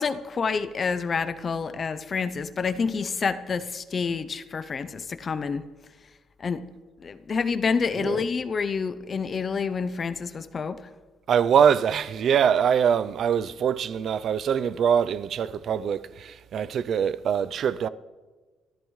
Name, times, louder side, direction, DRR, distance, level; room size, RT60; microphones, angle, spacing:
voice 1, 0.0-5.6 6.4-6.6 7.0-10.9, left 5 dB, 30° left, 0.5 m, -28 dB
voice 2, 11.3-17.9, right 8 dB, 50° right, 0.4 m, -23 dB
24.0 x 14.5 x 3.2 m
cardioid pair, 165°, 0 cm